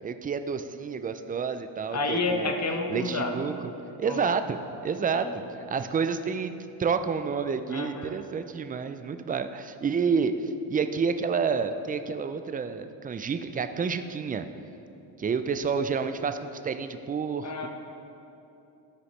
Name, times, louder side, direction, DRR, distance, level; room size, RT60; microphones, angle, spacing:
voice 1, 0.0-2.5 2.9-3.5 4.0-4.6 4.8-5.4 5.7-6.5 6.8-14.5 15.2-17.7, right 5 dB, 20° right, 9 dB, 0.3 m, -29 dB
voice 2, 1.9-3.4 4.0-4.3 5.1-5.3 7.7-8.2 17.4-17.7, left 3 dB, 35° left, 3 dB, 1.1 m, -30 dB
13.0 x 4.8 x 3.2 m, 2.8 s
cardioid pair, 80°, 44 cm